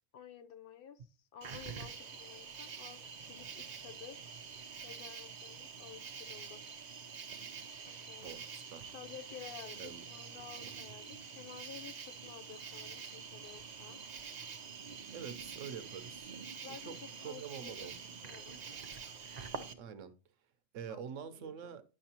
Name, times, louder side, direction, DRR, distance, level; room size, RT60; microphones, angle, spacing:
voice 1, 0.1-4.3 4.8-6.7 7.8-8.4 8.9-14.0 16.6-18.6 20.9-21.7, left 8 dB, 55° left, 0.7 m, -52 dB
Cricket, 1.4-19.7, right 5 dB, 45° right, 0.6 m, -46 dB
voice 2, 15.1-16.3 16.7-16.9 17.2-17.9 19.8-20.1 20.7-21.8, right 7 dB, 65° right, 1.0 m, -45 dB
10.0 x 6.4 x 2.9 m
omnidirectional pair, 1.5 m